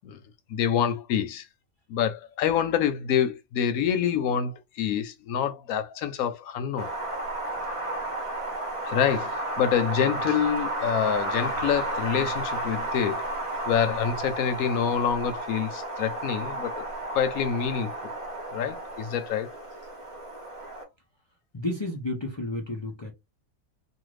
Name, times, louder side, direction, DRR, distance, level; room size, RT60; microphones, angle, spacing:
voice 1, 0.5-1.5 1.9-6.9 8.8-13.2 13.7-18.1 18.5-19.5, left 8 dB, 85° left, 1.1 m, -27 dB
Wind, 6.8-20.8, right 2 dB, 25° right, 0.9 m, -33 dB
voice 2, 21.5-23.1, left 1 dB, 35° left, 0.4 m, -31 dB
2.5 x 2.5 x 3.1 m
omnidirectional pair, 1.5 m